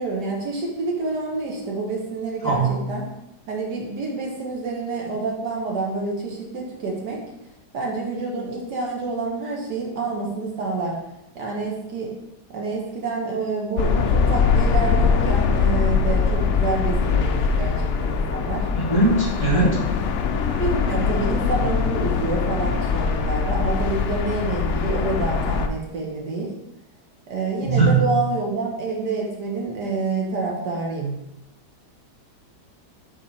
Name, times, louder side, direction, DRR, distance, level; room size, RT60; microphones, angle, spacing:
voice 1, 0.0-3.1 3.5-7.2 7.7-11.0 11.4-12.1 12.5-18.7 19.5-20.0 20.5-26.5 27.3-31.1, right 3 dB, 75° right, -2 dB, 1.8 m, -28 dB
voice 2, 2.4-2.8 18.7-19.8 27.6-28.1, right 3 dB, 10° left, -8 dB, 2.3 m, -19 dB
sound 1, 13.8-25.7, left 5 dB, 80° left, 0.6 m, -22 dB
7.7 x 3.7 x 4.2 m, 0.86 s
omnidirectional pair, 1.8 m